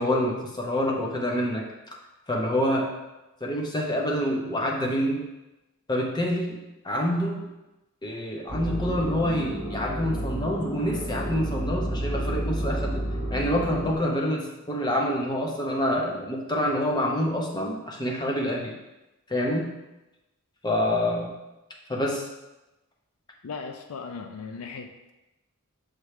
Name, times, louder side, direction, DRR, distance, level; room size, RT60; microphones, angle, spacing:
voice 1, 0.0-1.7 2.3-2.9 3.4-5.2 5.9-6.6 6.8-7.4 8.0-13.0 13.3-18.7 19.3-19.7 20.6-21.3 21.9-22.2, equal, 20° left, -1 dB, 0.8 m, -27 dB
sound 1, 8.5-13.9, right 1 dB, 55° left, 1.7 m, -31 dB
voice 2, 23.4-25.1, left 5 dB, 70° left, 6 dB, 0.4 m, -37 dB
6.3 x 3.2 x 4.8 m, 1.0 s
head